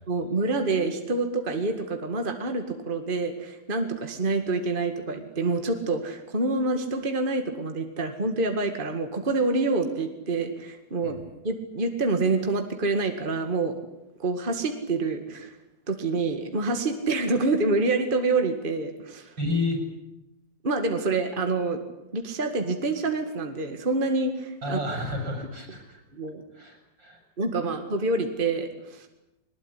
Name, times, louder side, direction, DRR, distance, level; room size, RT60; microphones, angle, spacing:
voice 1, 0.1-13.8 14.2-15.5 15.9-19.3 20.6-21.8 22.1-24.8 26.1-26.4 27.4-29.1, right 3 dB, 30° right, 6 dB, 2.2 m, -27 dB
voice 2, 19.4-19.8 24.6-26.0 26.5-27.2, left 2 dB, 80° right, 4 dB, 7.6 m, -30 dB
22.0 x 20.5 x 10.0 m, 0.93 s
omnidirectional pair, 2.0 m